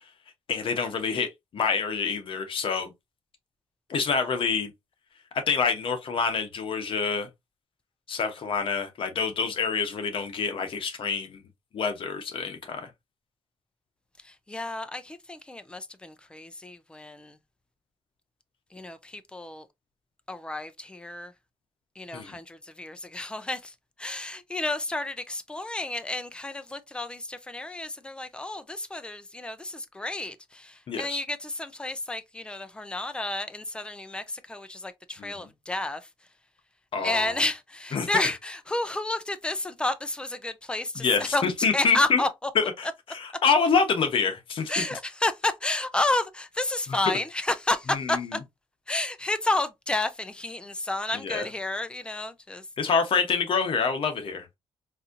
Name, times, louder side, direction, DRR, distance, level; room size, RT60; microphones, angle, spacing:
voice 1, 0.5-2.9 3.9-4.7 5.3-7.3 8.1-11.4 11.7-12.9 22.1-22.4 30.9-31.2 35.2-35.3 36.9-37.3 37.9-38.1 40.9-42.2 42.6-44.8 47.9-48.3 51.2-51.4 52.8-54.5, left 5 dB, 55° left, 1.0 m, -27 dB
voice 2, 14.2-17.4 18.7-19.7 20.3-21.3 22.0-36.1 37.0-41.4 41.7-42.5 44.7-48.4 48.9-52.6, left 2 dB, 10° left, 0.4 m, -31 dB
4.1 x 2.7 x 2.5 m
cardioid pair, 140°, 11 cm